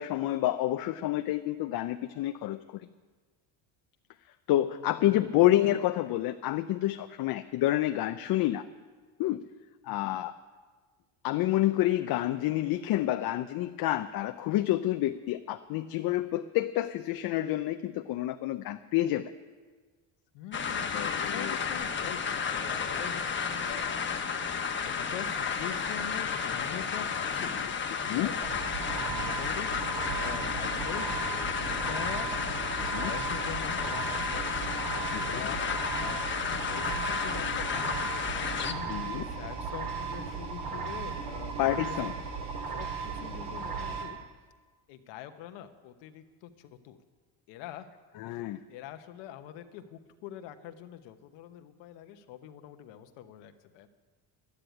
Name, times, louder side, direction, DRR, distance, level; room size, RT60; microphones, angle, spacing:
voice 1, 0.0-2.8 4.5-8.6 9.2-9.4 9.8-10.3 11.2-19.2 20.9-21.6 28.1-28.3 32.8-33.1 35.1-35.4 38.9-39.2 41.6-42.1 48.2-48.6, left 14 dB, 55° left, 8 dB, 0.6 m, -28 dB
voice 2, 20.3-24.1 24.8-28.3 28.8-29.7 30.2-34.4 34.9-35.6 36.0-38.2 38.5-38.9 39.3-44.2 44.9-47.0 47.5-47.9 48.2-48.4 48.7-53.9, left 10 dB, 85° left, 8 dB, 1.1 m, -44 dB
sound 1, 20.5-38.7, left 6 dB, 25° left, 1.1 m, -32 dB
sound 2, 28.4-44.0, right 5 dB, 60° right, 3.8 m, -36 dB
12.0 x 10.0 x 9.1 m, 1.4 s
cardioid pair, 125°, 43 cm